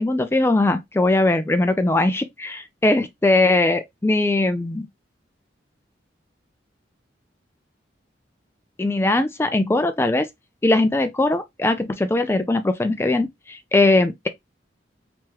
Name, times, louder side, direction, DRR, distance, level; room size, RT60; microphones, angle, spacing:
voice 1, 0.0-4.9 8.8-10.3 10.6-14.3, left 2 dB, 15° left, 0.3 m, -20 dB
3.5 x 3.0 x 2.9 m
head